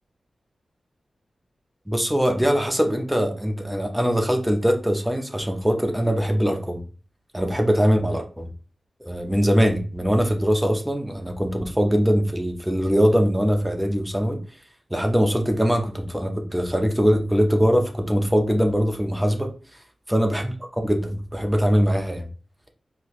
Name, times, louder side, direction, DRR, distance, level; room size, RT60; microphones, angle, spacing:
voice 1, 1.9-6.8 7.3-8.5 9.0-14.4 14.9-19.5 20.1-22.2, equal, 5° right, 3 dB, 0.6 m, -22 dB
4.2 x 2.1 x 2.5 m, 0.37 s
cardioid pair, 65°, 0 cm